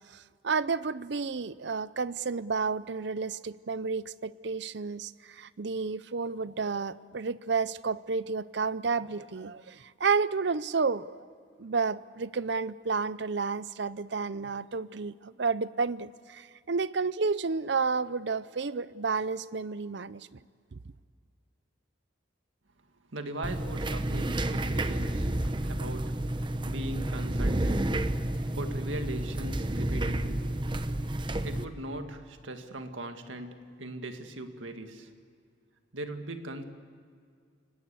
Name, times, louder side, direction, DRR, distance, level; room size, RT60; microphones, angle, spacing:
voice 1, 0.1-11.2 11.6-20.3 20.7-20.8, right 4 dB, 60° right, 0.6 m, -31 dB
voice 2, 23.1-27.9 28.2-30.5 31.4-35.1 35.9-36.6, right 1 dB, 80° right, 1.9 m, -40 dB
sound 1, 23.4-31.6, right 1 dB, 25° right, 0.8 m, -30 dB
29.5 x 17.5 x 8.3 m
head